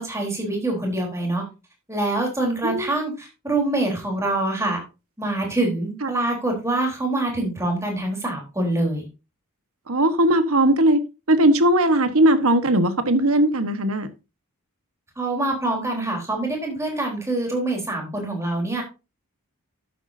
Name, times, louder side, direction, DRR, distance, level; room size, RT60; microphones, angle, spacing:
voice 1, 0.0-1.4 1.9-4.8 5.2-9.1 15.2-18.8, right 2 dB, 15° right, 3.8 m, -25 dB
voice 2, 9.9-11.0 11.3-14.1, right 1 dB, 70° right, 1.3 m, -18 dB
11.5 x 8.3 x 2.7 m
head